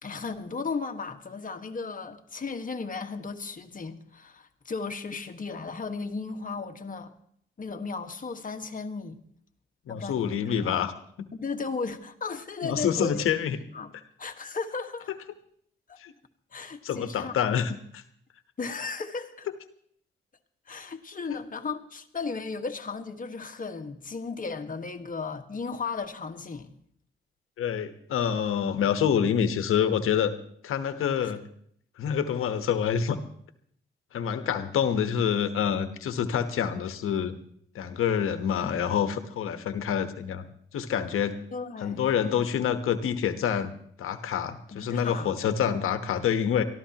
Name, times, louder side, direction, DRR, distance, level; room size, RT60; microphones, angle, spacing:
voice 1, 0.0-7.1 7.6-9.2 9.9-10.7 11.3-13.3 13.7-13.9 14.2-15.1 15.9-16.0 16.5-17.3 18.6-19.5 20.7-26.7 31.2-31.3 41.5-42.0 44.7-45.4, left 4 dB, 40° left, 1.5 m, -35 dB
voice 2, 9.9-10.9 11.2-11.3 12.6-13.6 16.0-16.1 16.8-18.0 21.3-21.4 27.6-30.3 30.6-31.4 32.0-33.2 34.1-37.4 37.7-40.4 40.7-41.4 41.8-43.7 44.0-46.6, left 8 dB, 85° left, 1.1 m, -27 dB
23.5 x 14.0 x 2.9 m
cardioid pair, 75°, 21 cm